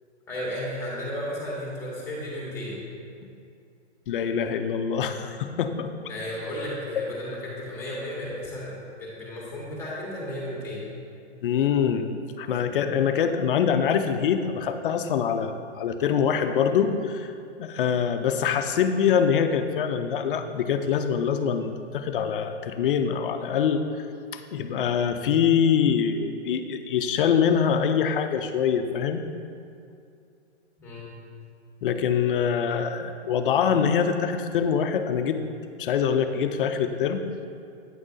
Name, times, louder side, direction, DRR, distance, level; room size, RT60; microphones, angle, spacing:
voice 1, 0.3-2.8 6.0-8.7 9.0-10.8 30.8-31.1, left 1 dB, 5° left, -5 dB, 1.6 m, -34 dB
voice 2, 4.1-5.9 11.4-12.1 12.4-15.5 15.8-17.3 17.6-23.8 24.3-29.3 31.8-35.4 35.8-37.5, left 7 dB, 50° left, 7 dB, 0.5 m, -24 dB
8.9 x 6.0 x 2.6 m, 2.4 s
hypercardioid pair, 145°, 35 cm